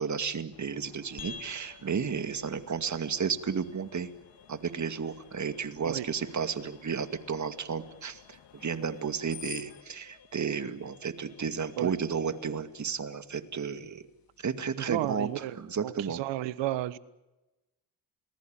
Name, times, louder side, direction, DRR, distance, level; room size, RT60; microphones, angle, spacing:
voice 1, 0.0-4.1 4.5-14.0 14.4-15.3 15.6-16.2, right 6 dB, 40° right, 10 dB, 2.3 m, -33 dB
Screech, 0.5-9.8, left 11 dB, 75° left, 2.5 m, -53 dB
sound 1, 1.2-15.8, left 5 dB, 55° left, 3.5 m, -54 dB
voice 2, 14.8-15.6 15.8-17.0, right 14 dB, 80° right, 17 dB, 1.3 m, -32 dB
28.5 x 20.5 x 9.1 m, 1.0 s
supercardioid pair, 70°, 43 cm